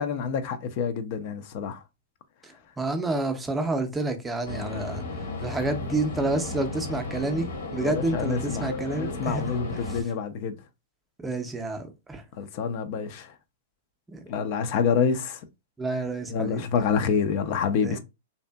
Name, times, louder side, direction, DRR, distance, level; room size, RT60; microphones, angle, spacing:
voice 1, 0.0-1.8 7.8-10.6 12.4-13.3 14.3-15.4 16.3-18.0, left 6 dB, 50° left, 0.4 m, -27 dB
voice 2, 2.8-5.0 5.4-10.0 11.2-12.2 14.1-14.2 15.8-16.6 17.8-18.0, right 2 dB, 10° right, 0.5 m, -29 dB
sound 1, 4.4-10.0, left 3 dB, 75° left, 1.0 m, -34 dB
2.6 x 2.4 x 2.2 m
hypercardioid pair, 115°, 0 cm